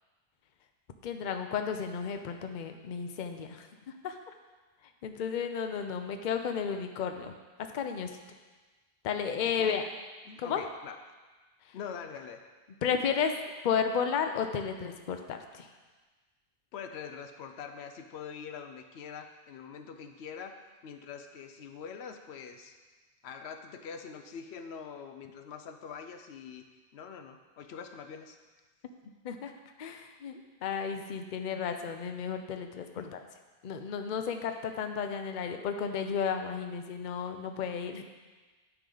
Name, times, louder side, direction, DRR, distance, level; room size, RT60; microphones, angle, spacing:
voice 1, 1.0-4.2 5.0-7.3 7.7-8.2 9.0-9.9 10.4-10.6 12.8-13.3 13.6-15.7 29.2-29.5 29.8-33.0 33.6-38.0, left 7 dB, 55° left, 6 dB, 0.7 m, -33 dB
voice 2, 9.4-9.8 10.3-11.0 11.7-12.4 16.7-20.5 20.8-22.8 23.2-26.6 26.9-28.4 32.9-33.1, left 6 dB, 85° left, 7 dB, 0.9 m, -44 dB
9.9 x 5.8 x 3.8 m, 1.3 s
omnidirectional pair, 1.1 m